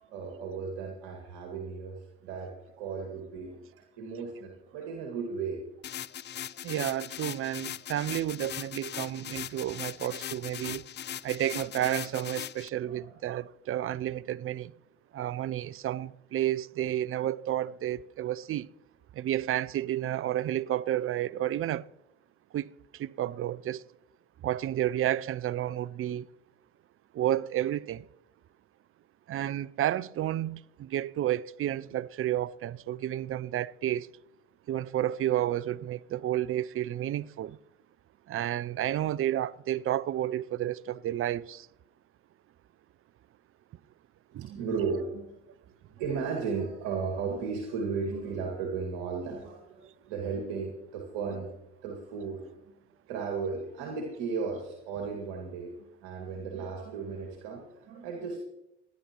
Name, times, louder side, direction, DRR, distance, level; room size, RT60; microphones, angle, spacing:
voice 1, 0.0-5.6 12.8-13.1 44.4-45.4 46.0-51.5 51.8-52.7 53.1-58.4, right 5 dB, 75° right, 2.1 m, -35 dB
sound 1, 5.8-12.7, left 10 dB, 35° left, 0.5 m, -40 dB
voice 2, 6.6-10.8 11.2-14.7 15.1-18.7 19.1-21.8 22.5-23.8 24.4-26.3 27.1-28.1 29.3-34.1 34.7-37.6 38.3-41.7 44.3-44.5, right 12 dB, 40° right, 0.5 m, -31 dB
29.0 x 10.5 x 3.0 m
hypercardioid pair, 60°, 32 cm